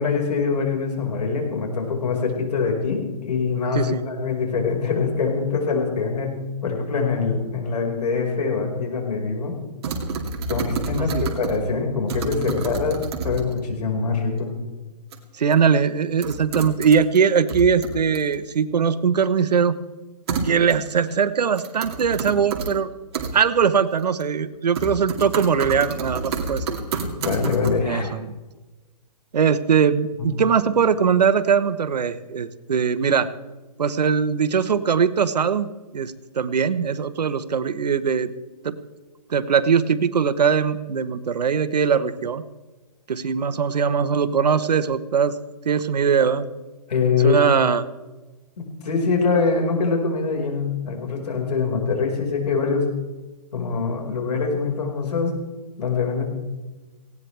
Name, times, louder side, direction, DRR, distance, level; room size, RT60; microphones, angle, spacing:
voice 1, 0.0-9.6 10.5-14.5 27.2-28.1 30.2-30.3 46.9-47.4 48.6-52.9 53.5-55.3 55.8-56.2, left 4 dB, 70° left, 1 dB, 5.2 m, -24 dB
sound 1, 9.8-11.7 12.1-13.6 15.1-15.2 15.5-15.6 16.2-17.2 17.5-18.3 20.3-20.9 21.6-22.7 23.1-23.3 24.0-24.5 24.8-27.7, right 4 dB, 40° right, 2.4 m, -29 dB
voice 2, 15.4-19.8 20.4-22.9 23.3-26.8 27.8-28.2 29.3-33.3 33.8-38.3 38.6-38.8 39.3-42.4 43.1-45.3 45.6-46.5 47.2-47.8, right 6 dB, 75° right, 13 dB, 1.2 m, -21 dB
19.0 x 17.5 x 3.4 m, 1.2 s
hypercardioid pair, 160°, 21 cm